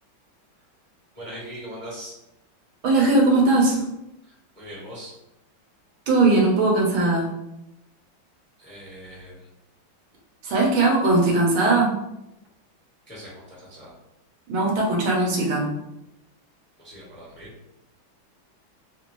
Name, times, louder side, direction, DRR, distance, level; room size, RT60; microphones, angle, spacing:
voice 1, 1.1-2.2 4.2-5.1 8.6-9.5 13.0-14.0 16.8-17.5, equal, 10° left, -6 dB, 0.7 m, -41 dB
voice 2, 2.8-3.8 6.1-7.3 10.4-12.0 14.5-15.7, right 2 dB, 90° right, -1 dB, 1.7 m, -19 dB
3.7 x 2.6 x 3.0 m, 0.87 s
omnidirectional pair, 2.1 m